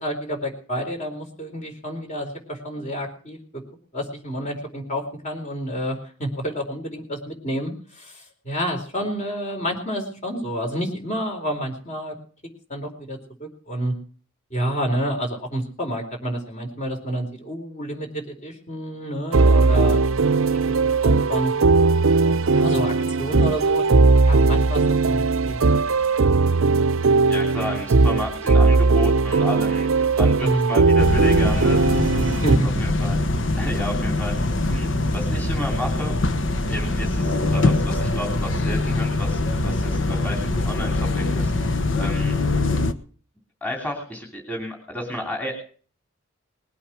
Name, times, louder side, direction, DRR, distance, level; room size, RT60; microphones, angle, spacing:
voice 1, 0.0-3.4 3.9-12.2 12.7-13.9 14.5-20.2 20.5-20.6 21.0-21.5 22.5-23.9 24.2-25.8 30.4-30.7 32.4-32.7, equal, 35° left, 3 dB, 4.3 m, -29 dB
sound 1, 19.3-32.6, right 3 dB, 75° right, 0.6 m, -18 dB
voice 2, 27.3-32.4 32.8-33.2 33.5-34.9 35.1-36.1 36.7-41.5 42.0-42.3 43.6-45.6, equal, 10° left, 0 dB, 3.3 m, -32 dB
sound 2, 31.0-42.9, left 2 dB, 65° left, 1.1 m, -23 dB
20.5 x 8.6 x 6.1 m, 0.43 s
head